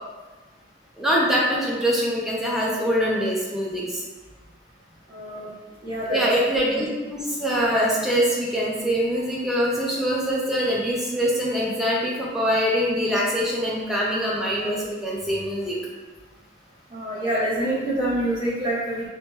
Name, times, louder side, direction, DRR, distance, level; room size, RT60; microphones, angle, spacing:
voice 1, 1.0-4.0 6.1-15.7, equal, ahead, -5 dB, 0.4 m, -24 dB
voice 2, 5.1-5.5 5.8-6.2 16.9-19.1, right 1 dB, 25° right, -12 dB, 1.3 m, -26 dB
2.8 x 2.1 x 3.1 m, 1.2 s
head